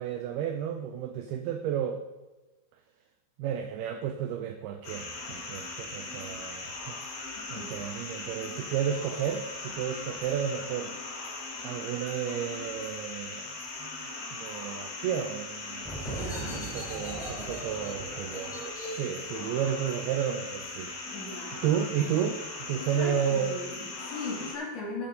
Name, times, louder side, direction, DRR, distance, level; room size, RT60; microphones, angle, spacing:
voice 1, 0.0-2.0 3.4-7.0 7.5-10.9 11.6-13.9 14.3-18.6 18.9-21.1 21.6-22.4 22.7-23.5, right 8 dB, 85° right, 7 dB, 2.2 m, -32 dB
sound 1, 4.8-24.5, left 3 dB, 80° left, 5.1 m, -39 dB
voice 2, 7.4-7.9 16.1-16.6 19.0-19.1 21.1-21.6 22.8-25.1, left 2 dB, 45° left, -5 dB, 3.7 m, -39 dB
sound 2, 15.8-21.2, right 1 dB, ahead, 2.1 m, -40 dB
15.5 x 8.8 x 3.9 m, 1.2 s
omnidirectional pair, 5.3 m